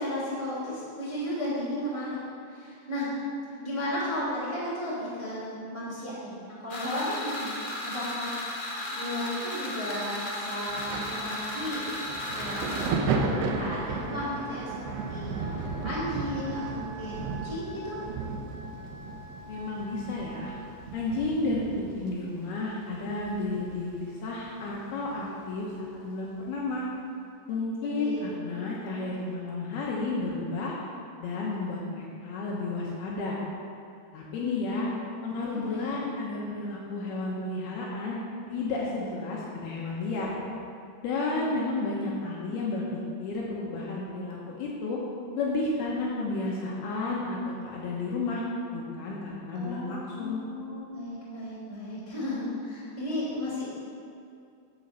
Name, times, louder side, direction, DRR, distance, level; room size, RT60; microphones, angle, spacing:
voice 1, 0.0-2.2 2.5-3.1 3.6-12.0 12.3-18.0 27.8-28.2 34.4-34.9 35.4-36.1 49.5-53.7, left 1 dB, 10° right, -8 dB, 1.9 m, -34 dB
sound 1, 6.7-12.9, left 1 dB, 50° left, 1.9 m, -35 dB
Wind instrument woodwind instrument, 8.7-20.7, right 3 dB, 55° right, 3.4 m, -45 dB
Thunder, 10.7-24.0 24.3-25.6 26.5-26.6, right 4 dB, 75° right, 2.8 m, -35 dB
voice 2, 19.5-20.5 20.9-25.7 25.9-26.9 27.5-30.8 31.2-33.4 34.1-34.9 35.2-38.2 38.5-40.3 41.0-42.8 43.2-45.0 45.4-48.4 48.7-50.4, left 3 dB, 75° left, -4 dB, 2.9 m, -32 dB
10.5 x 7.6 x 5.4 m, 2.4 s
omnidirectional pair, 4.9 m